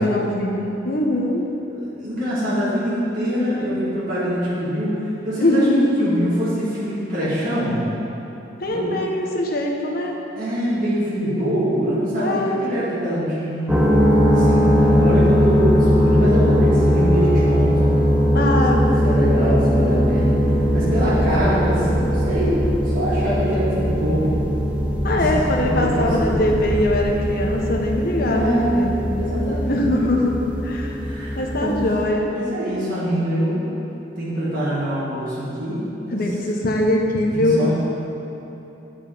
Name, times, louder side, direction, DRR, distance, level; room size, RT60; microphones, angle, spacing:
voice 1, 0.0-1.5 5.4-5.9 8.6-10.2 12.2-12.6 18.3-18.9 25.0-28.9 29.7-30.4 30.6-31.0 31.4-32.3 36.1-37.6, left 1 dB, 55° left, 0 dB, 0.9 m, -22 dB
voice 2, 1.8-7.9 8.7-9.0 10.4-13.7 14.3-17.7 18.7-20.4 20.7-24.4 25.1-26.5 28.3-28.8 29.1-29.8 31.0-31.8 32.2-33.7 34.2-35.8 36.1-36.3 37.3-37.7, equal, 50° right, -10 dB, 1.9 m, -24 dB
sound 1, 13.7-32.0, equal, 5° right, 0.6 m, -19 dB
8.9 x 4.8 x 5.0 m, 3.0 s
head